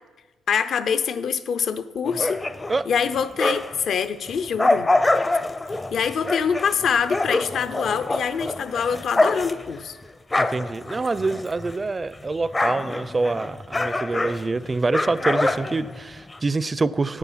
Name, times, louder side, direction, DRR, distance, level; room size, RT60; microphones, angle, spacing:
voice 1, 0.5-2.4 2.9-4.9 5.9-10.0, left 7 dB, 60° left, 12 dB, 0.6 m, -25 dB
sound 1, 2.1-3.9 4.3-11.9 12.1-16.4, left 2 dB, 20° left, 0.5 m, -25 dB
voice 2, 10.4-17.2, right 3 dB, 25° right, 17 dB, 0.4 m, -26 dB
9.9 x 9.0 x 5.7 m, 1.2 s
cardioid pair, 90°, 0 cm